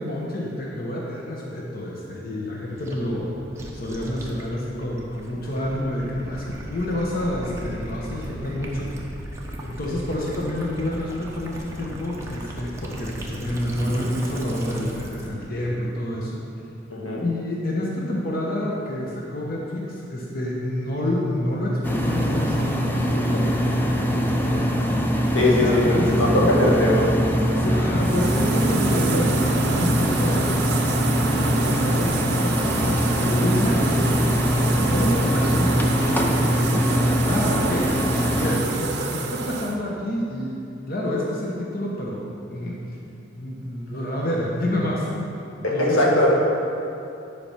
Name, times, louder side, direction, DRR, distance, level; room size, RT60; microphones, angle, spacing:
voice 1, 0.0-3.3 3.7-8.9 9.6-16.4 17.2-24.8 25.5-26.9 27.6-30.6 31.3-40.6 40.9-42.8 43.3-45.1 45.7-46.2, left 1 dB, 50° left, -3 dB, 1.0 m, -28 dB
Gurgling / Liquid, 2.8-15.4, right 1 dB, 15° right, 0.9 m, -37 dB
voice 2, 16.9-17.2 25.3-27.1 45.6-46.3, left 1 dB, 90° left, -4 dB, 1.7 m, -20 dB
sound 1, 21.8-38.6, equal, 10° left, 0.6 m, -22 dB
sound 2, 28.0-39.8, right 5 dB, 60° right, 0.7 m, -30 dB
10.0 x 5.0 x 5.7 m, 2.8 s
head